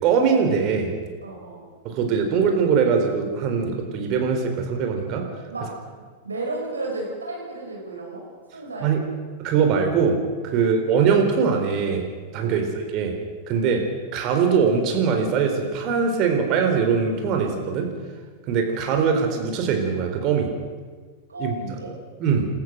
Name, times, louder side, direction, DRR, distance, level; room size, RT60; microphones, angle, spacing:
voice 1, 0.0-0.9 1.8-5.2 8.8-9.0 9.4-10.2 10.4-12.0 12.3-13.1 13.5-13.8 14.1-17.9 18.5-20.5 21.4-21.5 22.2-22.5, right 6 dB, 40° right, 4 dB, 4.2 m, -21 dB
voice 2, 1.2-1.6 5.5-5.9 6.2-8.2 8.5-8.9 10.5-10.7 12.4-12.6 21.3-21.9, right 2 dB, 80° right, -1 dB, 6.6 m, -33 dB
28.5 x 14.0 x 6.5 m, 1.5 s
figure-of-eight pair, 95°, 0 cm